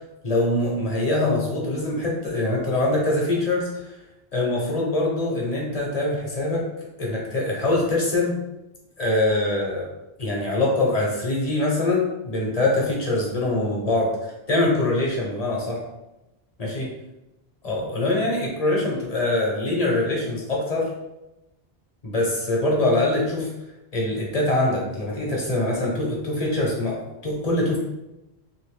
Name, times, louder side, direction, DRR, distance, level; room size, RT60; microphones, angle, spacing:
voice 1, 0.2-3.9 4.3-6.7 7.0-8.4 9.0-9.9 10.2-15.8 16.6-16.9 17.6-20.9 22.0-23.5 23.9-27.8, left 2 dB, 40° left, -2 dB, 0.9 m, -23 dB
2.9 x 2.6 x 3.4 m, 0.93 s
omnidirectional pair, 1.0 m